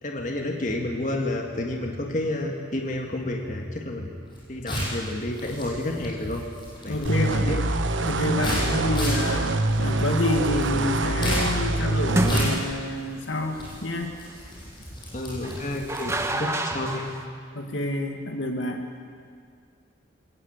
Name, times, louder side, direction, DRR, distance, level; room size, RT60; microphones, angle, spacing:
voice 1, 0.0-4.1 4.5-6.4 6.8-7.6 8.5-8.7 15.1-17.0, left 1 dB, 40° left, 1 dB, 2.0 m, -30 dB
sound 1, 4.2-16.5, equal, 25° left, 7.6 m, -35 dB
voice 2, 6.9-7.5 8.1-9.5 9.8-14.2 16.3-16.4 17.5-18.8, left 2 dB, 75° left, 4 dB, 2.2 m, -28 dB
sound 2, 7.0-12.6, right 2 dB, 80° right, 1.1 m, -25 dB
sound 3, 10.3-10.6 12.1-12.9 15.4-17.2, right 1 dB, 15° right, 1.2 m, -29 dB
21.5 x 18.0 x 8.1 m, 2.1 s
head